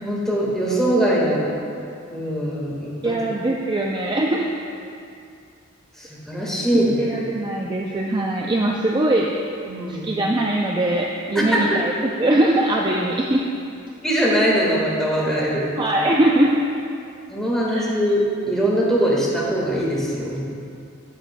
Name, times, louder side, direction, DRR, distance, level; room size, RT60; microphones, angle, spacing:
voice 1, 0.0-1.5 2.1-3.1 6.0-7.1 9.6-10.1 11.3-11.4 14.0-15.7 17.3-20.4, equal, ahead, -6 dB, 1.5 m, -22 dB
voice 2, 3.0-4.5 6.7-9.3 9.9-13.4 15.8-16.7 17.7-17.9, right 1 dB, 20° right, -1 dB, 0.4 m, -21 dB
13.0 x 7.5 x 2.2 m, 2.5 s
head